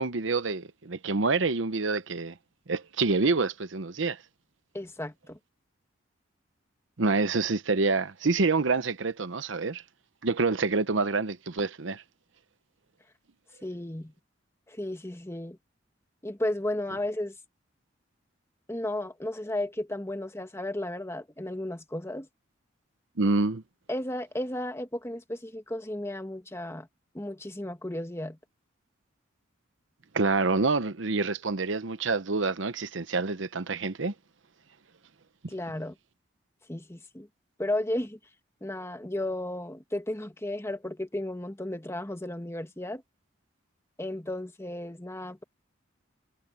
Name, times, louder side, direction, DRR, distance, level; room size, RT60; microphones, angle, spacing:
voice 1, 0.0-2.3 2.7-4.2 7.0-9.8 10.2-12.0 23.2-23.6 30.1-34.1, right 3 dB, 70° right, 0.9 m, -27 dB
voice 2, 4.7-5.4 13.6-14.1 14.7-15.6 16.2-17.3 18.7-22.3 23.9-26.9 27.1-28.4 35.5-35.9 36.7-37.3 37.6-38.2 38.6-43.0 44.0-45.4, left 1 dB, 15° left, 1.4 m, -34 dB
head